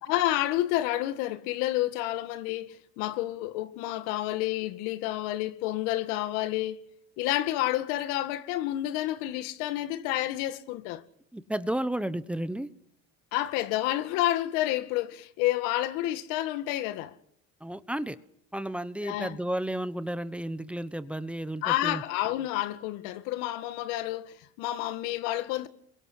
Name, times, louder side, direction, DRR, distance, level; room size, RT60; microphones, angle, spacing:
voice 1, 0.0-6.8 7.2-11.0 13.3-17.1 19.0-19.4 21.6-25.7, left 15 dB, 90° left, 2.1 m, -29 dB
voice 2, 11.3-12.7 17.6-18.2 18.5-22.0, right 1 dB, 5° right, 1.0 m, -32 dB
28.0 x 23.5 x 6.4 m
cardioid pair, 145°, 29 cm